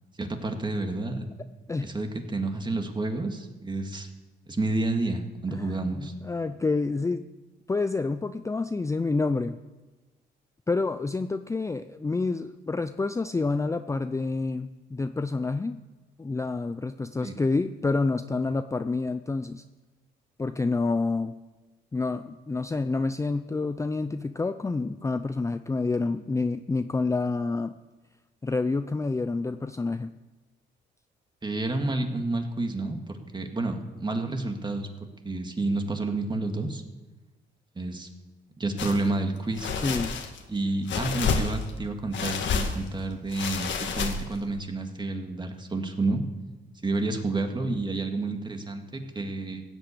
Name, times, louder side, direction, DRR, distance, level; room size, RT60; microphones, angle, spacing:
voice 1, 0.2-1.3 1.8-4.1 4.5-6.1 17.2-17.4 31.4-34.9 35.2-36.8 37.8-38.1 38.6-39.7 40.5-46.2 46.8-49.6, right 2 dB, 25° right, 5 dB, 2.0 m, -30 dB
voice 2, 5.5-7.2 7.7-9.6 10.7-15.8 16.2-19.6 20.4-21.3 21.9-27.7 28.4-30.1 39.8-40.2, left 3 dB, 15° left, 10 dB, 0.5 m, -28 dB
sound 1, 38.8-39.0 39.5-40.4 40.9-41.8 42.1-42.9 43.3-44.4, left 5 dB, 70° left, 1.8 m, -29 dB
16.0 x 8.3 x 8.5 m, 1.2 s
cardioid pair, 90°, 20 cm